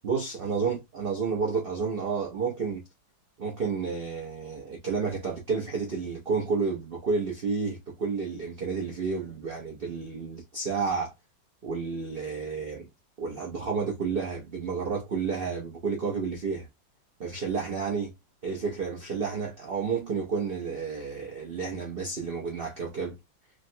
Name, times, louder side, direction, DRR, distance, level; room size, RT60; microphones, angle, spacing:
voice 1, 0.0-2.8 3.4-11.1 11.6-12.9 13.2-16.7 17.2-18.1 18.4-23.2, right 5 dB, 75° right, 0.5 m, -31 dB
3.6 x 2.1 x 2.6 m
omnidirectional pair, 2.0 m